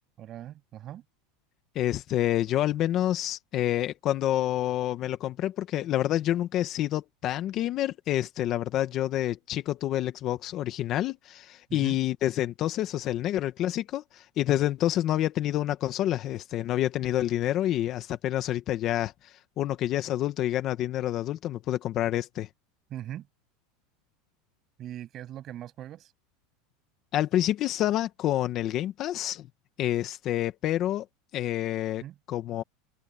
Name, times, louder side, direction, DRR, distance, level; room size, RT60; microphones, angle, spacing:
voice 1, 0.2-1.0 11.7-12.0 22.9-23.3 24.8-26.1 32.0-32.2, right 12 dB, 35° right, 7.6 m, -40 dB
voice 2, 1.7-22.5 27.1-29.5 29.8-31.0 31.3-32.0 32.3-32.6, left 13 dB, 40° left, 1.5 m, -28 dB
supercardioid pair, 145°, 0 cm